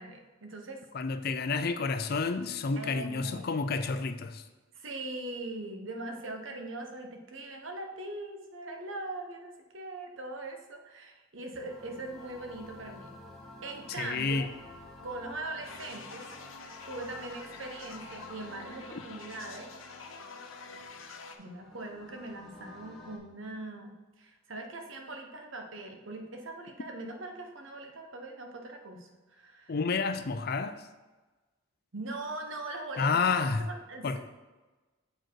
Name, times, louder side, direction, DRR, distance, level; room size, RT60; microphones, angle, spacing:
voice 1, 0.0-0.8 2.7-3.5 4.7-13.2 13.6-14.5 15.0-16.3 16.5-19.7 21.4-29.8 31.9-33.1 33.6-34.2, right 2 dB, 70° right, 4 dB, 1.0 m, -41 dB
voice 2, 0.9-4.4 14.0-14.5 29.7-30.9 33.0-33.7 34.0-34.2, left 4 dB, 50° left, 10 dB, 0.5 m, -30 dB
sound 1, 11.6-23.2, left 1 dB, ahead, 1.5 m, -51 dB
sound 2, 15.6-21.3, left 4 dB, 75° left, 0.8 m, -47 dB
7.5 x 4.6 x 4.6 m, 1.2 s
head